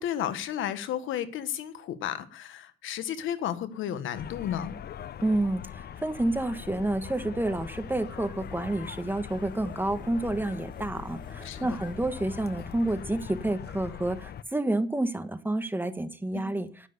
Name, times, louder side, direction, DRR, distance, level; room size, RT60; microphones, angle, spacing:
voice 1, 0.0-4.7 11.4-11.7 16.3-16.6, left 10 dB, 85° left, 1.4 m, -33 dB
sound 1, 4.1-14.4, left 10 dB, 55° left, 0.7 m, -42 dB
voice 2, 5.2-16.7, right 1 dB, 10° right, 1.5 m, -29 dB
sound 2, 7.5-13.4, left 2 dB, 25° left, 4.9 m, -49 dB
10.5 x 9.9 x 6.7 m
cardioid pair, 90°, 20 cm